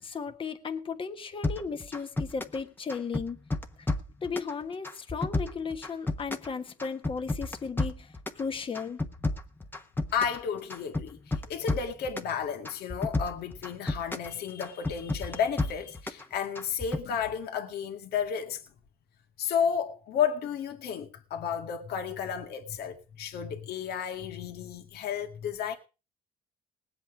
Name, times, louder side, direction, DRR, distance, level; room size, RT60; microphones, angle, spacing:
voice 1, 0.0-3.4 3.8-3.9 4.2-9.0, left 5 dB, 30° left, 1.4 m, -35 dB
sound 1, 1.4-2.6 2.9-4.5 4.8-6.5 6.8-8.4 8.7-10.4 10.7-12.3 12.7-14.3 14.6-16.2 16.6-17.0, left 2 dB, 10° left, 1.1 m, -31 dB
voice 2, 10.1-18.6 19.4-25.7, left 7 dB, 70° left, 2.0 m, -32 dB
19.5 x 8.2 x 4.8 m
cardioid pair, 110°, 17 cm